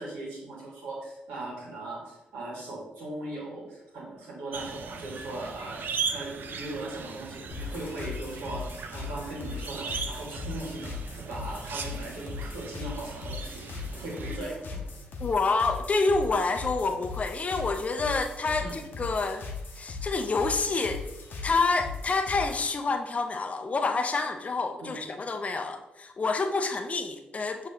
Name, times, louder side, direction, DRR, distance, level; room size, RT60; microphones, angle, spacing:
voice 1, 0.0-8.6 8.9-10.9 11.3-13.6 13.9-14.8 18.6-18.7 24.8-25.0, right 2 dB, 85° right, -5 dB, 1.6 m, -38 dB
sound 1, 4.5-14.4, right 5 dB, 60° right, 0.5 m, -38 dB
sound 2, 7.5-22.7, left 4 dB, 65° left, 0.7 m, -39 dB
voice 2, 15.2-19.5 19.8-21.0 21.4-27.7, left 3 dB, 40° left, 6 dB, 0.5 m, -28 dB
6.0 x 3.0 x 2.7 m, 0.94 s
supercardioid pair, 50°, 4 cm